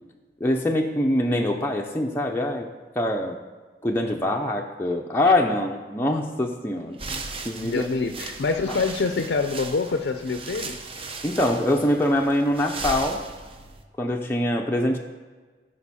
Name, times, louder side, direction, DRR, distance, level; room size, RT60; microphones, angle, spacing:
voice 1, 0.4-2.7 3.0-3.4 3.8-7.9 8.7-8.8 11.2-13.2 14.0-15.0, left 1 dB, 15° left, 0 dB, 0.5 m, -24 dB
sound 1, 6.9-13.8, right 3 dB, 35° right, 0.7 m, -37 dB
voice 2, 7.6-10.8, left 4 dB, 70° left, 7 dB, 0.5 m, -26 dB
14.5 x 5.1 x 4.2 m, 1.4 s
head